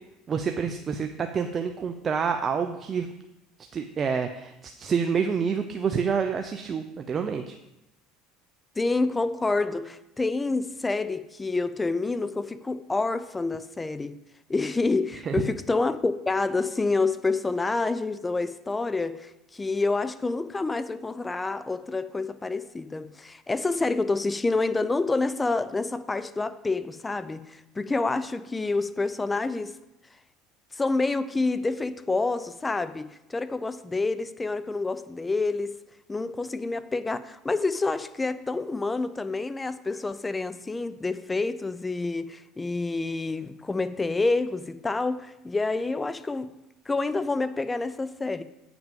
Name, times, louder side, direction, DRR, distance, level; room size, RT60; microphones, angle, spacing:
voice 1, 0.3-3.1 3.7-7.6 15.2-15.4, right 6 dB, 35° right, 0.6 m, -28 dB
voice 2, 8.8-14.2 14.5-29.7 30.8-35.8 36.1-46.5 46.9-48.4, left 3 dB, 15° left, 0.5 m, -28 dB
8.9 x 6.0 x 5.3 m
supercardioid pair, 100°, 0 cm